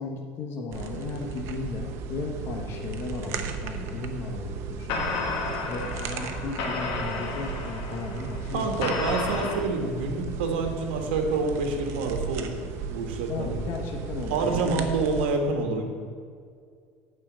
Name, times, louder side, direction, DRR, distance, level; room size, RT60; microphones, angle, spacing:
voice 1, 0.0-5.0 5.7-8.9 9.4-9.6 13.3-14.9, left 4 dB, 50° left, 1 dB, 1.0 m, -35 dB
sound 1, 0.7-15.3, right 5 dB, 60° right, 0.8 m, -35 dB
sound 2, 4.9-9.6, left 4 dB, 70° left, 1.4 m, -32 dB
voice 2, 8.5-12.6 12.9-13.6 14.3-15.8, right 3 dB, 90° right, 4 dB, 1.3 m, -27 dB
8.7 x 4.5 x 7.3 m, 2.2 s
supercardioid pair, 110°, 5 cm